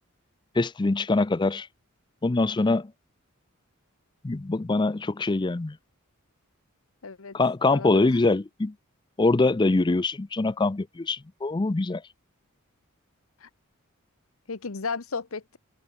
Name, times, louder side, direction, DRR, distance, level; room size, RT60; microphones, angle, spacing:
voice 1, 0.6-1.7 2.2-2.9 4.2-5.8 7.3-8.7 9.2-12.0, left 3 dB, 20° left, 0.4 m, -24 dB
voice 2, 7.0-7.4 7.7-8.2 13.4-13.5 14.5-15.6, left 4 dB, 70° left, 1.0 m, -34 dB
head